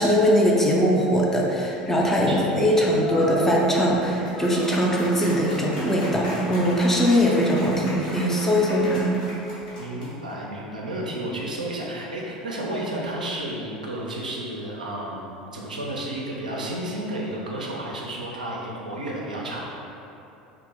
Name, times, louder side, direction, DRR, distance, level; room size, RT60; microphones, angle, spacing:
voice 1, 0.0-9.1, equal, 10° left, -3 dB, 0.4 m, -21 dB
sound 1, 2.9-10.3, equal, 75° left, 0.9 m, -36 dB
voice 2, 9.8-19.6, right 1 dB, 80° right, -3 dB, 0.4 m, -32 dB
2.7 x 2.0 x 3.2 m, 2.9 s
figure-of-eight pair, 75°, 4 cm